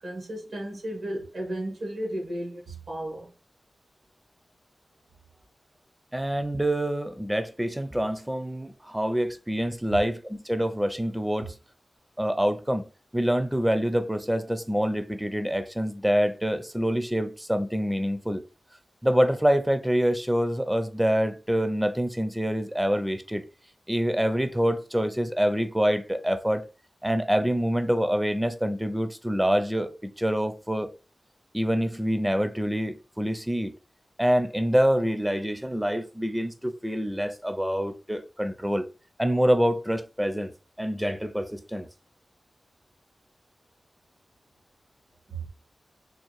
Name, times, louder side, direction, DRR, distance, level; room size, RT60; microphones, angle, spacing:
voice 1, 0.0-3.3 9.9-10.0 11.4-11.5 45.3-45.5, right 1 dB, 85° right, 1.3 m, -34 dB
voice 2, 6.1-11.5 12.2-12.9 13.1-18.4 19.0-23.4 23.9-26.6 27.0-30.9 31.5-33.7 34.2-38.8 39.2-40.5 40.8-41.9, equal, 5° right, 0.4 m, -26 dB
3.6 x 2.3 x 3.1 m
wide cardioid pair, 85°, 0 cm